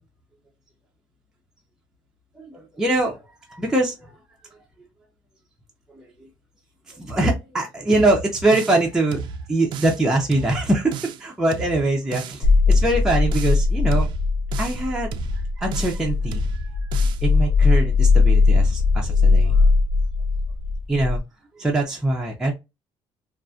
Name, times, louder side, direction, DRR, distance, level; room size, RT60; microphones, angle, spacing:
voice 1, 2.4-3.2 3.5-4.1 5.9-6.0 6.9-9.2 9.5-14.1 14.6-15.1 15.6-16.8 17.2-19.7 20.9-21.2 21.6-22.5, right 2 dB, 5° right, 0.5 m, -23 dB
sound 1, 7.9-8.8 9.1-10.0 10.3-11.2 11.5-12.4 12.7-13.6 13.9-14.8 15.1-16.0 16.3-17.2, right 7 dB, 60° right, 0.3 m, -34 dB
sound 2, 12.4-21.2, left 4 dB, 70° left, 0.5 m, -19 dB
2.5 x 2.4 x 2.2 m
cardioid pair, 135°, 9 cm